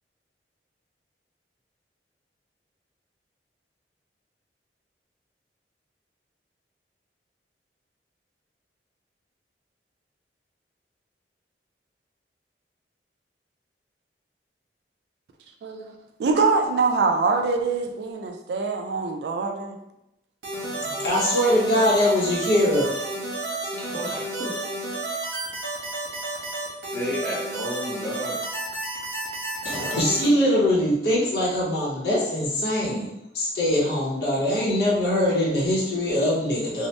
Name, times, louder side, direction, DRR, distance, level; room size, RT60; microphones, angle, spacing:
voice 1, 15.6-15.9 16.2-19.8, right 4 dB, 70° right, 4 dB, 0.3 m, -24 dB
sound 1, 20.4-30.3, right 2 dB, 85° right, 0.9 m, -31 dB
voice 2, 20.5-22.9 29.6-36.9, left 1 dB, 70° left, -5 dB, 0.7 m, -23 dB
voice 3, 23.7-24.5 26.9-28.4, left 1 dB, 10° left, -5 dB, 0.6 m, -32 dB
2.7 x 2.0 x 3.1 m, 0.86 s
head